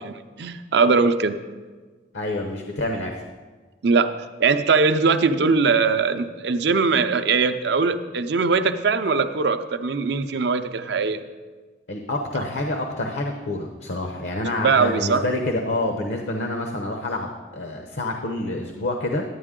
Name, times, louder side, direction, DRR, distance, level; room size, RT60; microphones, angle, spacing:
voice 1, 0.4-1.4 3.8-4.1 4.4-11.2 14.6-15.2, right 4 dB, 65° right, 9 dB, 0.5 m, -21 dB
voice 2, 2.1-3.1 11.9-19.2, left 2 dB, 75° left, 3 dB, 0.8 m, -27 dB
11.0 x 8.9 x 3.7 m, 1.4 s
head